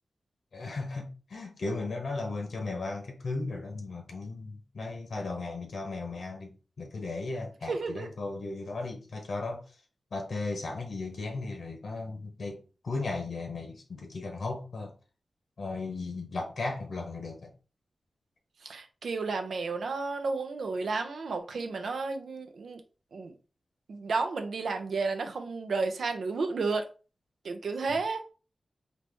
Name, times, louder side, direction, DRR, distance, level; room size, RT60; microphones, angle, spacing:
voice 1, 0.5-6.5 6.8-9.6 10.1-14.9 15.6-17.5 27.9-28.0, left 3 dB, 75° left, 0.9 m, -36 dB
voice 2, 7.7-8.1 18.6-22.8 23.1-23.3 23.9-26.9 27.4-28.2, right 4 dB, 90° right, 0.6 m, -32 dB
4.1 x 2.8 x 3.4 m
wide cardioid pair, 120°, 0 cm